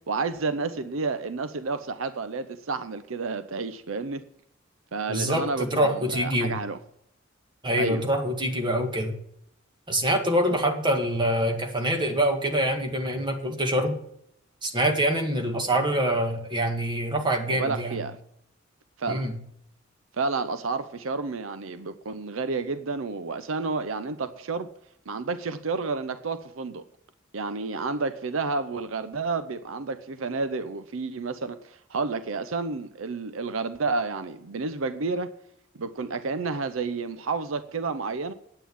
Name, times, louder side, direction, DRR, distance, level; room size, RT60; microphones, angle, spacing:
voice 1, 0.1-4.2 4.9-6.8 7.7-8.1 10.5-10.6 17.5-18.2 19.0-19.3 20.1-24.7 25.1-26.9 27.3-35.3 35.8-38.3, right 4 dB, 75° right, 0.6 m, -30 dB
voice 2, 5.1-6.5 7.6-9.1 9.9-13.9 14.6-18.0 19.1-19.3, right 1 dB, 25° right, 1.9 m, -25 dB
9.3 x 9.0 x 7.0 m
head